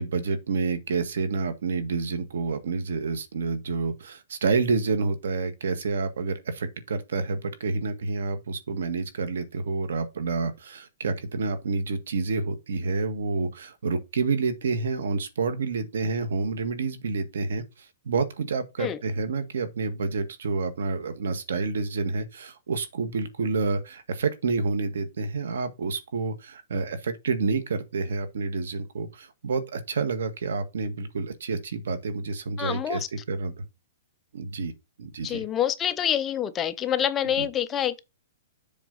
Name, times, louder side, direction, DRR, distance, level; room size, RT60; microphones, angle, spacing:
voice 1, 0.0-33.7 34.3-34.7 35.0-35.4 37.2-37.5, right 4 dB, 80° right, 1.7 m, -29 dB
voice 2, 32.6-33.1 35.2-38.0, left 10 dB, 15° left, 0.5 m, -26 dB
7.3 x 4.1 x 5.3 m
hypercardioid pair, 170°, 0 cm